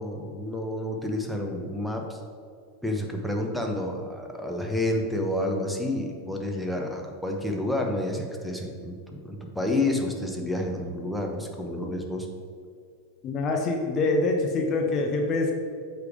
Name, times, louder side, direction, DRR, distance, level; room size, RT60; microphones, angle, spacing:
voice 1, 0.0-2.2 2.8-12.3, left 1 dB, ahead, 2 dB, 0.9 m, -29 dB
voice 2, 13.2-15.5, left 2 dB, 35° left, 2 dB, 0.7 m, -25 dB
8.1 x 3.4 x 5.0 m, 2.2 s
figure-of-eight pair, 85°, 0 cm